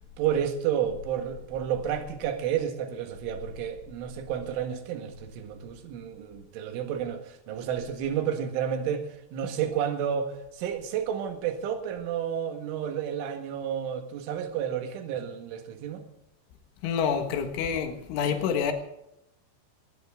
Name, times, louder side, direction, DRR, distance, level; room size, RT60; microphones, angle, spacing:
voice 1, 0.2-16.0, right 9 dB, 85° right, 6 dB, 4.3 m, -31 dB
voice 2, 16.8-18.7, left 7 dB, 85° left, 5 dB, 4.1 m, -27 dB
19.5 x 19.0 x 3.7 m, 0.83 s
omnidirectional pair, 5.4 m